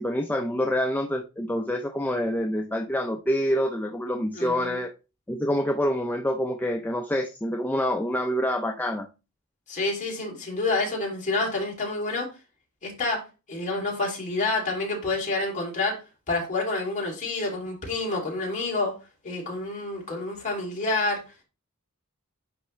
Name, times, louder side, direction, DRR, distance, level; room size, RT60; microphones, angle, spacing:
voice 1, 0.0-4.9 5.3-9.1, equal, 10° left, 2 dB, 0.5 m, -26 dB
voice 2, 4.3-4.8 9.7-12.3 12.8-13.2 13.5-16.0 16.3-18.9 19.2-21.2, left 2 dB, 35° left, -1 dB, 2.8 m, -28 dB
9.9 x 3.5 x 3.2 m, 0.30 s
head